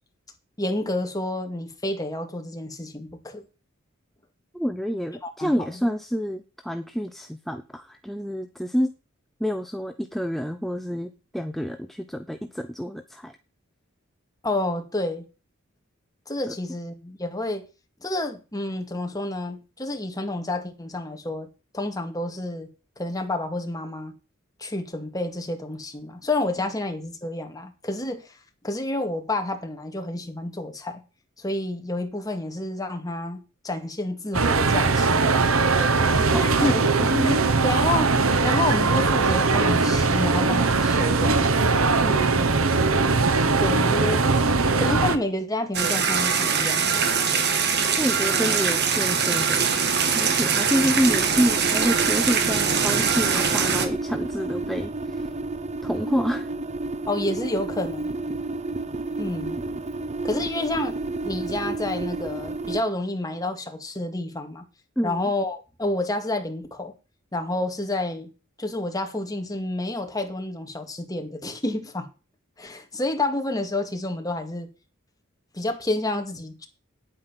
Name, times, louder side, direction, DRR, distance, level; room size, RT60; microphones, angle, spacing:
voice 1, 0.6-3.5 5.2-5.8 14.4-15.3 16.3-17.6 18.0-21.5 21.7-22.7 23.0-24.1 24.6-28.3 28.6-31.0 31.4-35.6 36.4-36.8 37.3-37.4 37.6-41.7 43.6-44.2 44.8-47.0 57.1-58.1 59.2-59.6 60.2-61.0 61.2-64.7 65.0-66.9 67.3-68.3 68.6-72.1 72.6-74.7 75.5-76.7, left 2 dB, 20° left, 2.2 m, -29 dB
voice 2, 4.5-8.9 9.4-13.3 16.5-16.6 36.0-37.4 42.0-42.5 48.0-49.7 50.0-55.3 55.8-56.5 65.0-65.3, equal, ahead, 0.7 m, -28 dB
sound 1, 34.3-45.2, right 3 dB, 80° right, 1.2 m, -20 dB
sound 2, 45.7-53.9, right 6 dB, 55° right, 1.9 m, -22 dB
sound 3, 51.0-62.8, right 2 dB, 35° right, 0.8 m, -31 dB
9.8 x 8.9 x 6.0 m
head